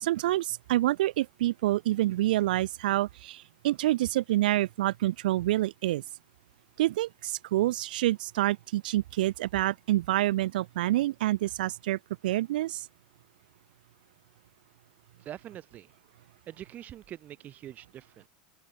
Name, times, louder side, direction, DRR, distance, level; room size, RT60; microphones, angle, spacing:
voice 1, 0.0-6.0 6.8-12.9, right 15 dB, 85° right, 0.3 m, -27 dB
voice 2, 15.2-15.9 16.5-18.3, right 11 dB, 35° right, 3.4 m, -44 dB
open air
supercardioid pair, 125°, 5 cm